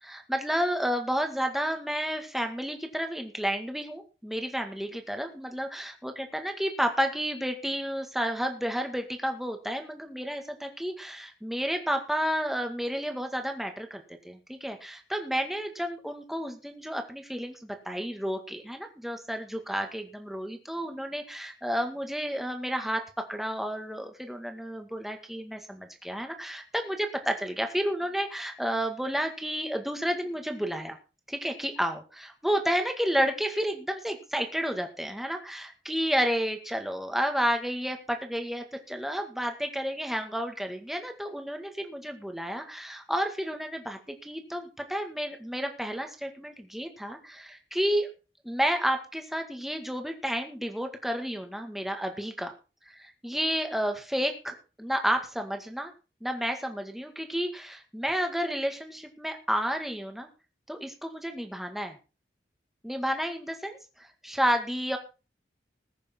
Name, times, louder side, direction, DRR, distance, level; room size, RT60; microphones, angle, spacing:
voice 1, 0.0-31.0 31.3-48.1 48.4-52.5 52.9-55.9 56.2-60.3 60.7-62.0 62.8-65.0, equal, ahead, 4 dB, 1.9 m, -31 dB
20.5 x 6.9 x 4.5 m, 0.33 s
head